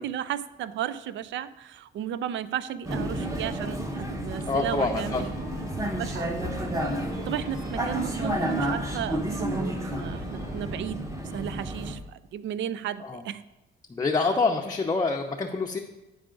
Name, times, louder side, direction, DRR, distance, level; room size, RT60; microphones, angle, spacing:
voice 1, 0.0-5.3 5.9-6.3 7.2-13.4 14.2-14.4, right 10 dB, 70° right, 16 dB, 0.4 m, -34 dB
Vehicle, 2.8-12.0, right 1 dB, 15° right, 1.0 m, -31 dB
sound 1, 4.4-10.8, left 1 dB, 85° right, 2.8 m, -43 dB
voice 2, 4.5-5.2 6.8-7.0 13.0-13.2 13.9-15.8, left 3 dB, 20° left, 1 dB, 0.6 m, -26 dB
10.0 x 4.8 x 3.8 m, 1.0 s
cardioid pair, 90°, 20 cm